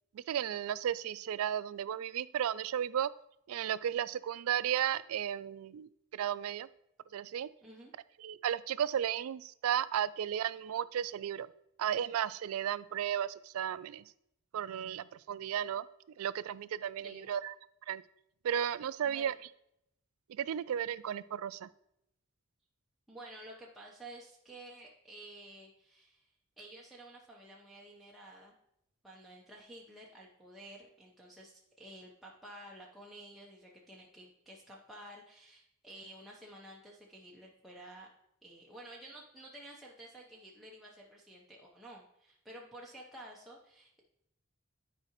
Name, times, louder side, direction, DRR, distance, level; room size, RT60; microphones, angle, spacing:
voice 1, 0.1-3.1 3.5-6.7 7.1-7.5 8.2-11.5 11.8-14.0 14.5-15.8 16.2-17.5 17.9-18.0 18.4-19.3 20.3-21.7, right 9 dB, 85° right, 17 dB, 0.3 m, -34 dB
voice 2, 7.6-7.9 17.0-17.3 19.0-19.4 23.1-26.3 26.6-28.5 29.0-38.1 38.4-44.1, right 1 dB, ahead, -4 dB, 0.7 m, -52 dB
10.5 x 4.8 x 3.0 m, 0.78 s
head